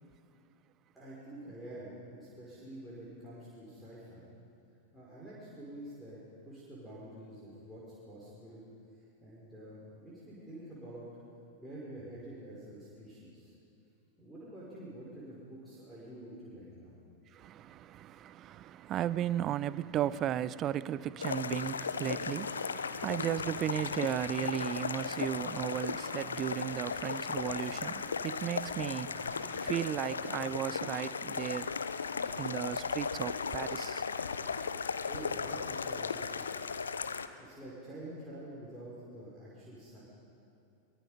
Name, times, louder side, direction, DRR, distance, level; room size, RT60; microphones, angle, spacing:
voice 1, 0.9-4.2 4.9-8.7 8.9-11.0 11.6-13.5 14.2-17.0 35.0-36.7 37.4-40.0, right 1 dB, 5° right, 5.3 m, -48 dB
voice 2, 17.3-31.7 32.4-34.0, right 11 dB, 30° right, 0.5 m, -35 dB
sound 1, 21.2-37.3, left 5 dB, 70° left, 0.7 m, -36 dB
23.0 x 22.5 x 5.2 m
figure-of-eight pair, 90°, 0 cm